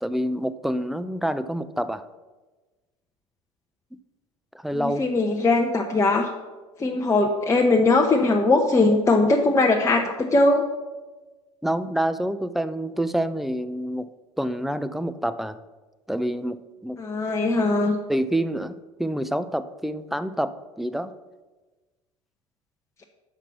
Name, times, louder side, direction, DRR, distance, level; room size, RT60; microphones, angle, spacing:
voice 1, 0.0-2.0 4.5-5.0 11.6-14.1 14.4-15.6 16.1-16.6 16.8-17.0 18.1-18.7 19.0-21.1, right 1 dB, ahead, 11 dB, 0.4 m, -27 dB
voice 2, 4.7-6.3 6.8-10.6 17.0-17.9, left 2 dB, 15° left, 1 dB, 0.8 m, -20 dB
6.0 x 5.8 x 6.9 m, 1.2 s
hypercardioid pair, 70°, 17 cm